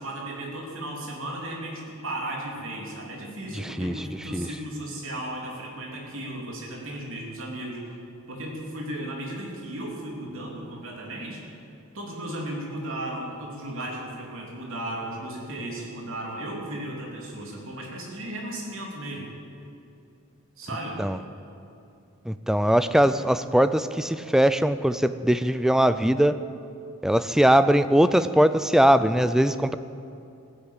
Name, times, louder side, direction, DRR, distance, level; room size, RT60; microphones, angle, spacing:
voice 1, 0.0-7.9 8.3-11.4 11.9-19.3 20.6-21.0, right 1 dB, 65° right, -1 dB, 3.2 m, -35 dB
voice 2, 3.5-4.0 4.3-4.5 21.0-21.2 22.3-26.3 27.0-29.7, equal, ahead, 12 dB, 0.4 m, -21 dB
15.5 x 10.5 x 8.3 m, 2.6 s
head